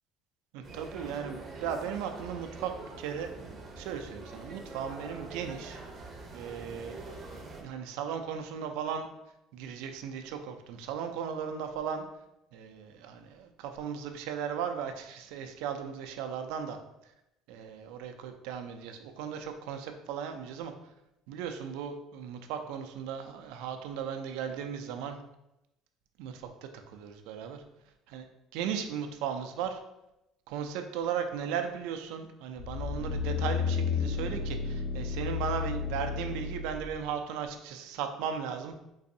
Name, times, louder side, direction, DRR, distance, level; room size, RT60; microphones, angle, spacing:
voice 1, 0.5-3.3 3.8-5.8 6.3-7.0 7.6-9.1 9.5-12.1 12.5-16.8 17.5-20.7 21.3-25.2 26.2-27.6 28.1-28.2 28.5-29.8 30.5-38.7, right 7 dB, 90° right, 6 dB, 0.4 m, -36 dB
sound 1, 0.6-7.6, right 3 dB, 30° right, 0.5 m, -45 dB
sound 2, 32.6-37.0 37.5-37.6, left 6 dB, 50° left, 0.3 m, -32 dB
3.9 x 2.5 x 2.6 m, 0.88 s
cardioid pair, 150°, 0 cm